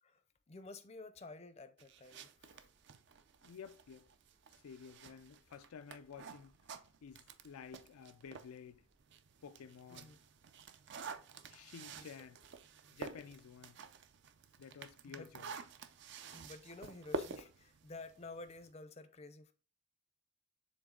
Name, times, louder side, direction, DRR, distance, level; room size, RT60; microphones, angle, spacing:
voice 1, 0.0-2.7 9.9-10.2 12.0-12.3 15.0-15.3 16.3-19.5, left 3 dB, 30° left, 0.5 m, -52 dB
sound 1, 1.8-8.6 9.0-18.7, right 4 dB, 55° right, 0.4 m, -49 dB
sound 2, 2.4-9.0, right 1 dB, 90° right, 2.6 m, -76 dB
voice 2, 3.4-4.1 4.5-6.6 7.0-8.9 9.4-10.2 11.5-12.4 12.9-13.8 14.6-15.5, left 6 dB, 85° left, 0.4 m, -52 dB
7.2 x 3.6 x 3.7 m
head